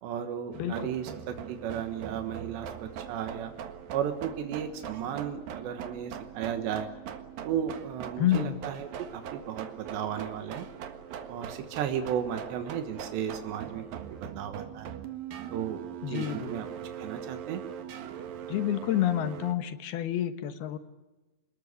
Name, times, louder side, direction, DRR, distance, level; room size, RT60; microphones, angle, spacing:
voice 1, 0.0-3.5 3.9-6.9 7.4-8.9 9.1-10.7 11.3-13.8 14.2-14.9 15.5-15.8 16.1-16.7 17.0-17.6, right 9 dB, 85° right, 6 dB, 3.6 m, -34 dB
voice 2, 0.5-0.9 8.2-8.6 16.0-16.6 18.5-20.8, left 12 dB, 70° left, 9 dB, 3.2 m, -29 dB
sound 1, 0.5-19.6, right 8 dB, 65° right, 3.1 m, -41 dB
27.5 x 20.5 x 8.3 m, 1.1 s
omnidirectional pair, 4.8 m